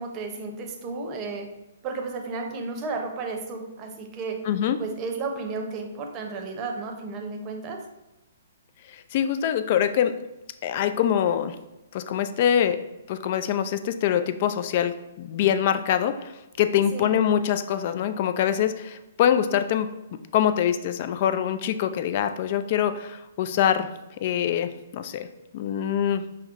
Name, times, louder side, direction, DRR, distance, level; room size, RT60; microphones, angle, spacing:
voice 1, 0.0-1.5 1.8-4.4 4.8-7.8 16.9-17.3, right 4 dB, 30° right, 2 dB, 0.7 m, -33 dB
voice 2, 4.4-4.8 8.9-10.1 10.6-11.6 11.9-12.8 13.1-16.3 16.6-23.9 24.2-25.3 25.5-26.2, left 9 dB, 45° left, 10 dB, 0.3 m, -24 dB
5.5 x 2.1 x 3.6 m, 0.99 s
hypercardioid pair, 130°, 0 cm